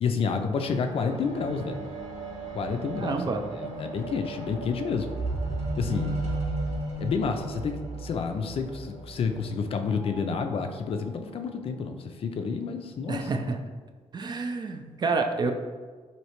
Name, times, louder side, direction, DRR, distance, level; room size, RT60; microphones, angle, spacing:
voice 1, 0.0-1.9 2.5-3.2 3.6-5.1 5.8-6.2 7.0-13.3, left 5 dB, 55° left, 6 dB, 0.4 m, -29 dB
sound 1, 0.5-10.0 10.8-10.9, right 2 dB, 70° right, 1.1 m, -35 dB
voice 2, 3.0-3.4 13.1-13.6 14.1-15.5, right 4 dB, 40° right, 5 dB, 0.3 m, -28 dB
3.1 x 2.7 x 2.9 m, 1.5 s
cardioid pair, 75°, 12 cm